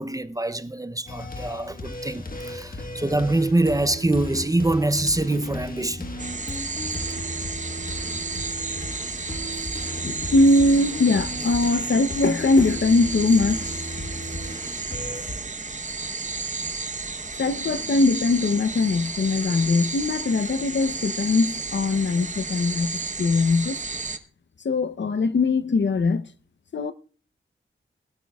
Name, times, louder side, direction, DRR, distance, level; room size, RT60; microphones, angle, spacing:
voice 1, 0.0-6.1, right 2 dB, 15° right, 0.6 m, -24 dB
sound 1, 1.1-15.4, left 1 dB, 45° left, 1.4 m, -35 dB
sound 2, 6.2-24.2, right 3 dB, 35° right, 1.0 m, -32 dB
voice 2, 10.0-14.1 17.4-23.8 24.6-26.3 26.7-26.9, left 3 dB, 60° left, 0.7 m, -21 dB
21.0 x 12.5 x 2.3 m
wide cardioid pair, 70°, 21 cm